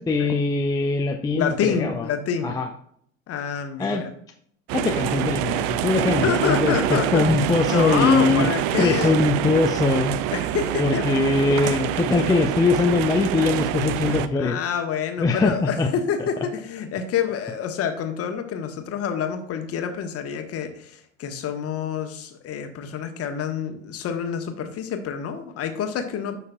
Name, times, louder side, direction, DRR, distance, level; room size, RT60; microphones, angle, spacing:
voice 1, 0.0-2.1 2.4-2.7 3.8-4.0 4.7-8.5 8.8-10.2 10.8-14.6 15.2-15.9, left 3 dB, 10° left, 3 dB, 0.5 m, -22 dB
voice 2, 1.4-2.5 3.3-4.1 6.1-7.2 7.7-9.2 10.3-11.6 14.1-26.4, left 7 dB, 35° left, 6 dB, 1.2 m, -27 dB
sound 1, 4.7-14.3, right 12 dB, 45° right, 0.5 m, -26 dB
11.0 x 5.4 x 2.4 m, 0.64 s
figure-of-eight pair, 70°, 40 cm